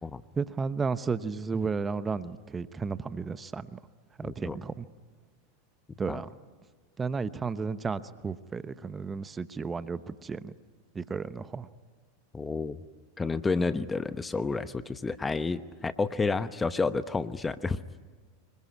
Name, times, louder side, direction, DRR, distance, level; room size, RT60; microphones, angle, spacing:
voice 1, 0.4-3.8 4.2-4.9 6.0-6.3 7.0-10.5 10.9-11.7, right 5 dB, 20° right, 14 dB, 0.9 m, -33 dB
voice 2, 4.2-4.6 6.1-6.2 12.3-12.8 13.2-17.8, left 4 dB, 15° left, 14 dB, 0.9 m, -30 dB
25.5 x 22.5 x 9.6 m, 1.5 s
hypercardioid pair, 95°, 0 cm